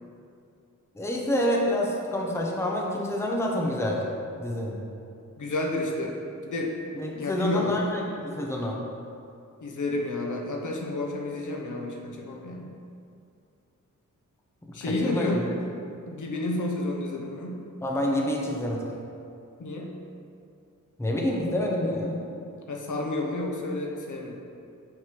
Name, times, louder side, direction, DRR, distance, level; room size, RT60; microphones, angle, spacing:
voice 1, 0.9-4.0 4.4-4.8 6.9-8.8 14.9-15.4 17.8-18.9 21.0-22.2, left 1 dB, 10° left, -1 dB, 0.7 m, -27 dB
voice 2, 5.4-6.2 6.4-6.7 7.1-7.7 9.6-12.7 14.7-15.4 16.1-17.6 19.6-19.9 22.7-24.4, left 2 dB, 70° left, 0 dB, 0.9 m, -30 dB
7.7 x 3.2 x 5.9 m, 2.5 s
wide cardioid pair, 155°, 32 cm